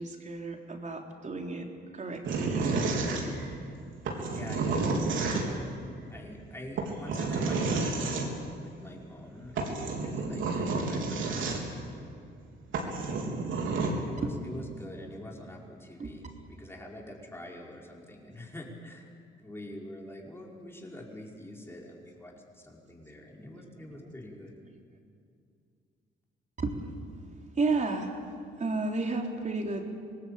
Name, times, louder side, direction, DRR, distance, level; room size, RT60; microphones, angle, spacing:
voice 1, 0.0-2.9 5.1-5.2 14.2-14.7 16.0-16.1 23.4-24.8 26.6-26.9 27.6-28.2 28.6-29.9, right 3 dB, 40° right, 2 dB, 3.7 m, -33 dB
sound 1, 2.2-3.6 4.0-5.7 6.8-8.3 9.2-9.3 9.6-11.9 12.4-12.5 12.7-13.9, right 3 dB, 75° right, 4.0 m, -30 dB
voice 2, 4.3-5.5 6.1-8.3 8.6-11.8 13.9-16.2 16.5-19.0 19.4-22.3 22.6-24.5, left 1 dB, 10° left, -2 dB, 5.2 m, -45 dB
25.0 x 19.0 x 8.7 m, 2.4 s
cardioid pair, 90°, 20 cm